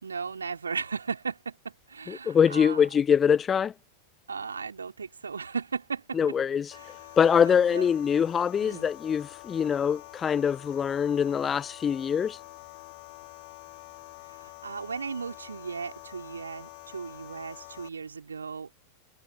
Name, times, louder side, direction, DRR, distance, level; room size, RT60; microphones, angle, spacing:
voice 1, 0.0-2.8 4.3-6.4 6.7-7.9 8.6-8.9 14.3-18.8, right 5 dB, 75° right, 3.7 m, -36 dB
voice 2, 2.1-3.7 6.2-6.7 7.2-12.4, left 7 dB, 20° left, 0.9 m, -24 dB
laser sustained, 6.7-17.9, left 33 dB, 45° left, 3.0 m, -47 dB
figure-of-eight pair, 90°, 0 cm